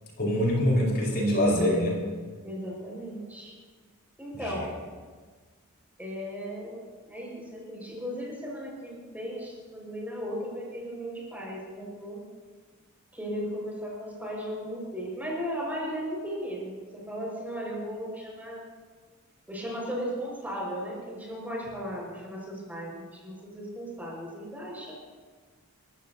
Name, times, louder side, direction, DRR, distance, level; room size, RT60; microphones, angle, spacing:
voice 1, 0.2-2.0 4.3-4.6, equal, 50° left, -2 dB, 4.7 m, -24 dB
voice 2, 2.4-3.5 4.2-4.8 6.0-12.2 13.1-18.6 19.5-24.9, equal, 10° right, -3 dB, 5.3 m, -36 dB
30.0 x 15.0 x 2.8 m, 1.5 s
head